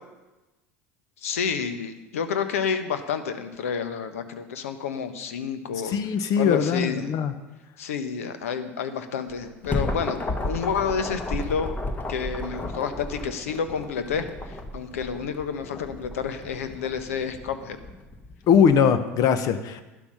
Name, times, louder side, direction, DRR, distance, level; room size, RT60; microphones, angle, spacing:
voice 1, 1.2-5.9 6.4-7.1 7.8-10.2 10.4-11.7 12.1-17.8, left 6 dB, 75° left, 9 dB, 1.1 m, -29 dB
voice 2, 5.8-7.3 18.5-19.8, left 7 dB, 50° left, 11 dB, 1.2 m, -21 dB
sound 1, 9.3-18.7, left 2 dB, 25° left, 1.6 m, -33 dB
11.5 x 10.5 x 5.6 m, 1.1 s
hypercardioid pair, 75°, 8 cm